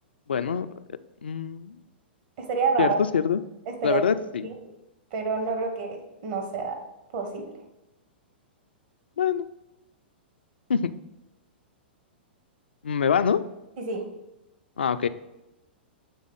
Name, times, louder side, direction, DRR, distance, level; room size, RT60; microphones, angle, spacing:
voice 1, 0.3-0.7 1.2-1.8 2.8-3.4 3.8-4.4 9.2-9.5 10.7-10.9 12.8-13.4 14.8-15.1, left 7 dB, 75° left, 12 dB, 0.3 m, -24 dB
voice 2, 2.4-3.0 3.7-4.0 4.4-4.5 5.1-6.8 7.1-7.5 13.8-14.1, right 4 dB, 50° right, 3 dB, 1.2 m, -28 dB
7.3 x 3.5 x 3.8 m, 0.94 s
figure-of-eight pair, 105°, 6 cm